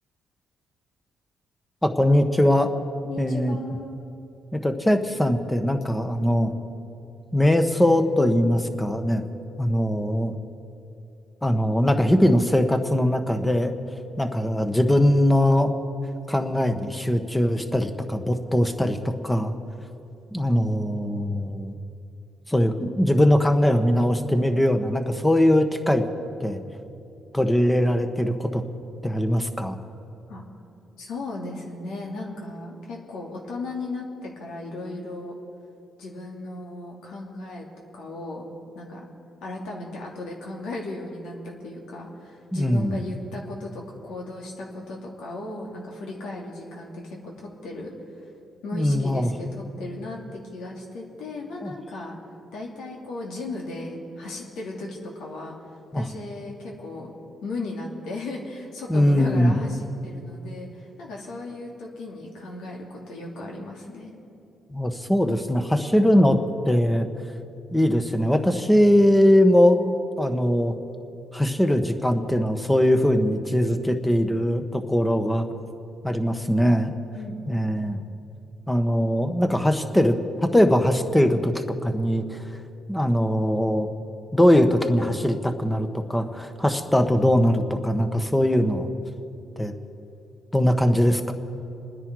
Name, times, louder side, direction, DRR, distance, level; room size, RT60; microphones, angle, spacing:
voice 1, 1.8-2.7 3.2-3.6 4.5-6.5 7.3-9.2 9.6-10.3 11.4-13.7 14.2-15.7 16.3-19.5 20.3-21.7 22.5-26.0 26.4-26.6 27.3-28.6 29.0-29.8 42.5-43.0 48.7-49.3 51.6-51.7 55.9-56.0 58.9-59.5 64.7-66.4 66.6-67.1 67.7-70.7 71.3-75.5 76.0-76.9 77.5-78.0 78.7-82.4 82.9-83.9 84.3-88.9 89.6-89.7 90.5-91.3, equal, 10° left, 7 dB, 1.3 m, -21 dB
voice 2, 3.0-3.9 30.3-30.4 31.0-35.3 36.0-37.6 37.9-38.5 38.7-39.0 39.4-48.3 48.6-52.2 52.5-57.1 57.4-64.1 77.1-77.7, left 2 dB, 85° left, -1 dB, 2.8 m, -36 dB
28.5 x 10.0 x 4.8 m, 2.8 s
cardioid pair, 90°, 0 cm